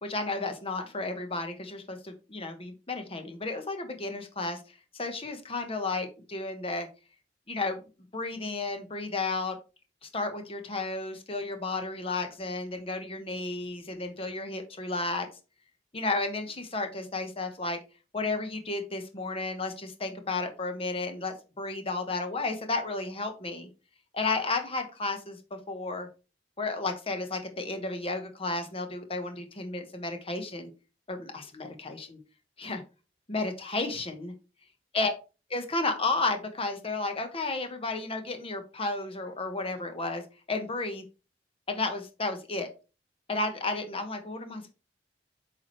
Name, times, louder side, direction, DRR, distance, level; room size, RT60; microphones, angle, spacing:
voice 1, 0.0-4.6 4.9-6.9 7.5-7.8 8.1-9.6 10.0-15.3 15.9-17.8 18.1-23.7 24.1-26.1 26.6-30.7 31.1-32.2 32.6-32.8 33.3-34.3 34.9-35.1 35.5-41.0 41.7-42.7 43.3-44.7, left 3 dB, 30° left, 6 dB, 1.2 m, -32 dB
8.6 x 4.8 x 3.2 m, 0.32 s
head